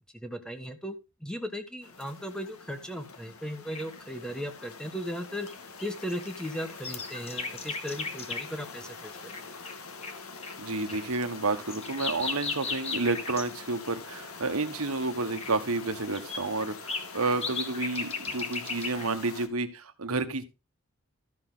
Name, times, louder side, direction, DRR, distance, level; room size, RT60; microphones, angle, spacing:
voice 1, 0.1-0.9 1.2-5.5 5.8-9.3, equal, 5° left, 7 dB, 1.3 m, -37 dB
sound 1, 1.8-19.5, left 4 dB, 90° left, 1.7 m, -45 dB
sound 2, 3.7-4.0 5.5-8.6 9.3-9.4 9.6-9.7 10.0-10.1 10.4-10.5 10.9-13.5 14.2-14.5 15.3-15.5 16.1-19.1, left 4 dB, 30° left, 1.5 m, -36 dB
voice 2, 10.6-20.4, right 3 dB, 85° right, 8 dB, 1.4 m, -30 dB
13.0 x 6.5 x 3.9 m, 0.27 s
head